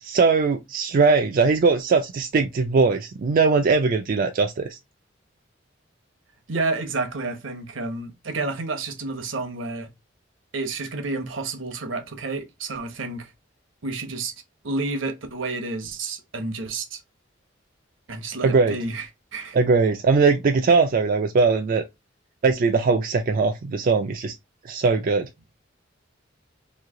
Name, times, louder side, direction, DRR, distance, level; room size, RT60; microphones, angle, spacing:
voice 1, 0.0-4.8 18.4-18.8 19.5-21.8 22.4-24.3 24.6-25.3, right 4 dB, 45° right, 0.4 m, -20 dB
voice 2, 6.5-9.9 10.5-13.3 13.8-14.3 14.6-17.0 18.1-19.6, right 3 dB, 75° right, 0.9 m, -30 dB
3.1 x 2.7 x 3.6 m
head